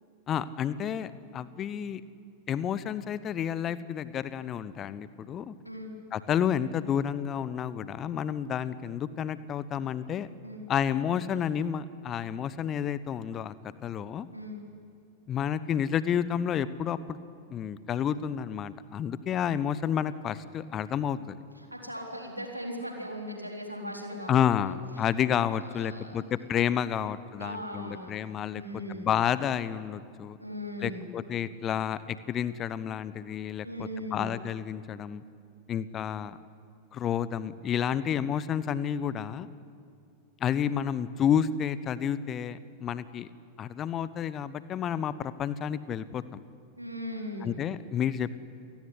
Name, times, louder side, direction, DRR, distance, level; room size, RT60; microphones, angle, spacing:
voice 1, 0.3-2.0 2.5-5.5 6.1-10.3 10.7-13.5 13.8-14.3 15.3-17.2 17.5-21.4 24.3-30.4 30.8-35.2 35.7-36.4 36.9-39.5 40.4-43.3 43.6-46.4 47.4-48.3, left 9 dB, 30° left, 16 dB, 1.0 m, -30 dB
voice 2, 21.7-24.8 25.7-26.2 27.4-28.2 28.5-29.1 30.4-31.1 33.6-34.3 46.8-47.7, equal, 90° right, 1 dB, 3.9 m, -38 dB
28.5 x 18.0 x 9.8 m, 2.3 s
figure-of-eight pair, 90°, 0 cm